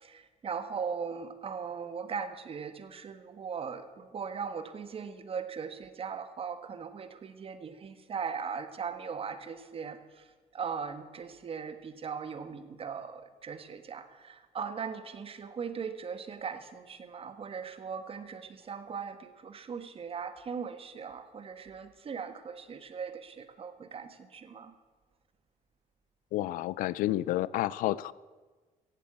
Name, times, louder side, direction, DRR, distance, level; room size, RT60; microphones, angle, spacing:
voice 1, 0.0-10.0 10.5-24.7, right 6 dB, 45° right, 11 dB, 1.4 m, -39 dB
voice 2, 26.3-28.1, left 15 dB, 85° left, 21 dB, 0.4 m, -30 dB
15.0 x 8.5 x 8.5 m, 1.4 s
cardioid pair, 95°, 14 cm